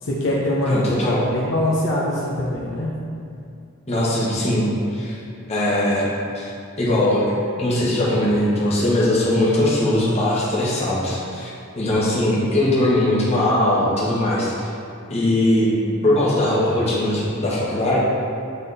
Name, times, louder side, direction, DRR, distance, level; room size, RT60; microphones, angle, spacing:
voice 1, 0.0-2.9, left 1 dB, 60° left, -5 dB, 0.8 m, -23 dB
voice 2, 0.6-1.2 3.9-5.2 5.5-6.1 6.3-6.4 6.8-11.5 11.8-14.7 15.1-18.0, left 1 dB, 30° left, -7 dB, 1.3 m, -20 dB
7.5 x 3.6 x 4.1 m, 2.4 s
head